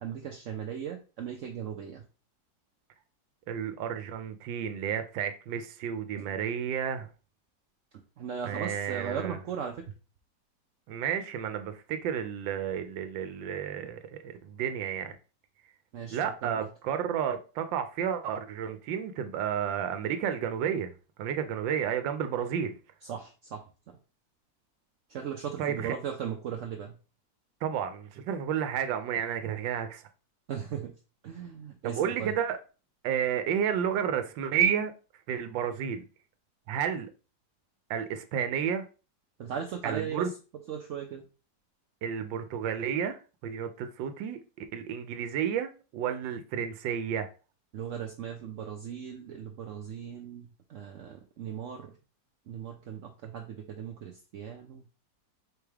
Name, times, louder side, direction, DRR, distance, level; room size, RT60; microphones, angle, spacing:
voice 1, 0.0-2.0 8.2-9.8 15.9-16.7 23.0-24.0 25.1-26.9 30.5-30.9 31.2-32.3 39.4-40.3 40.7-41.2 47.7-51.9 52.5-54.8, right 8 dB, 70° right, 0.7 m, -38 dB
voice 2, 3.5-7.1 8.4-9.4 10.9-15.1 16.1-20.9 21.2-22.8 25.6-25.9 27.6-30.0 31.8-32.6 33.0-34.9 35.3-36.0 36.7-37.1 37.9-38.8 39.8-40.3 42.0-47.3, right 8 dB, 90° right, 1.3 m, -31 dB
4.6 x 3.2 x 3.4 m
omnidirectional pair, 2.0 m